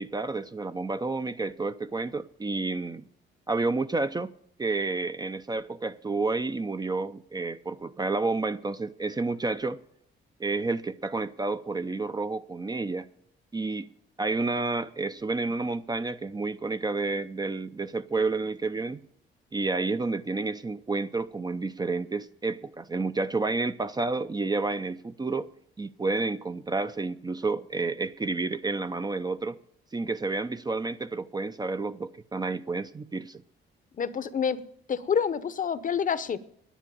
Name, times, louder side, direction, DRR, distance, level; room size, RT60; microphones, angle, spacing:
voice 1, 0.0-3.0 3.5-4.3 4.6-9.8 10.4-13.1 13.5-13.9 14.2-19.0 19.5-25.5 25.8-29.6 29.9-33.4, right 3 dB, 20° right, 0.5 m, -30 dB
voice 2, 34.0-34.6 34.9-36.4, left 7 dB, 40° left, 0.8 m, -27 dB
10.0 x 9.7 x 9.2 m
cardioid pair, 90°, 20 cm